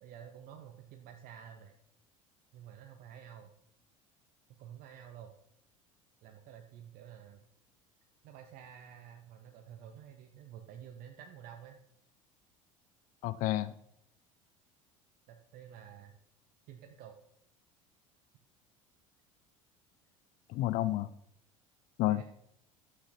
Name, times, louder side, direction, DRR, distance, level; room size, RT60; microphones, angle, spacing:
voice 1, 0.0-1.7 2.5-3.5 4.6-5.3 6.2-7.4 8.2-11.8 15.3-16.1 16.7-17.2 22.1-22.2, right 9 dB, 55° right, 4 dB, 1.1 m, -50 dB
voice 2, 13.2-13.7 20.5-21.1 22.0-22.2, left 15 dB, 50° left, 16 dB, 0.5 m, -30 dB
11.5 x 8.7 x 4.3 m, 0.74 s
hypercardioid pair, 70°, 17 cm